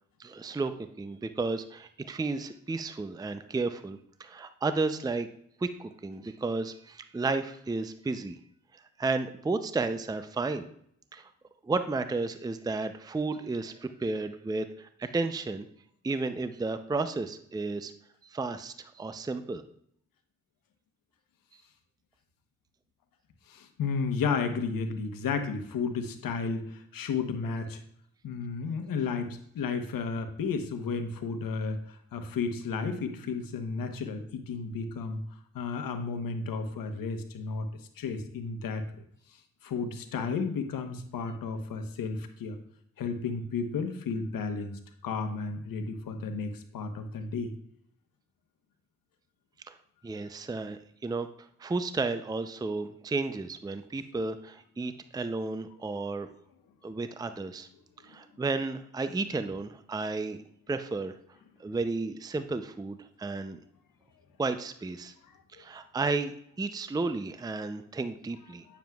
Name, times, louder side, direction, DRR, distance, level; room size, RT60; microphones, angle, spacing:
voice 1, 0.2-5.3 5.6-8.4 8.7-10.7 11.1-11.3 11.6-15.7 16.0-17.9 18.2-19.6 49.7-49.8 50.0-51.3 51.6-56.3 56.8-57.7 58.0-60.4 60.7-61.1 61.6-63.6 64.4-65.1 65.5-68.7, right 3 dB, 10° right, 10 dB, 0.5 m, -33 dB
voice 2, 23.5-27.8 28.2-35.2 35.5-37.7 38.0-38.8 39.6-42.6 43.0-47.5, left 5 dB, 80° left, 7 dB, 1.0 m, -33 dB
9.1 x 7.1 x 2.3 m, 0.68 s
cardioid pair, 55°, 34 cm